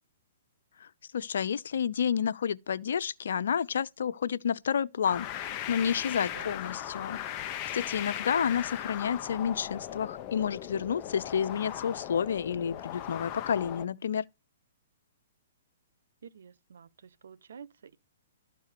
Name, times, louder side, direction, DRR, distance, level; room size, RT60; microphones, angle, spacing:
voice 1, 1.1-14.2, left 7 dB, 70° left, 0.6 m, -30 dB
sound 1, 5.0-13.9, left 11 dB, 35° left, 0.9 m, -38 dB
voice 2, 6.2-6.5 16.2-18.0, right 7 dB, 75° right, 1.0 m, -49 dB
13.0 x 4.4 x 6.7 m
hypercardioid pair, 140°, 0 cm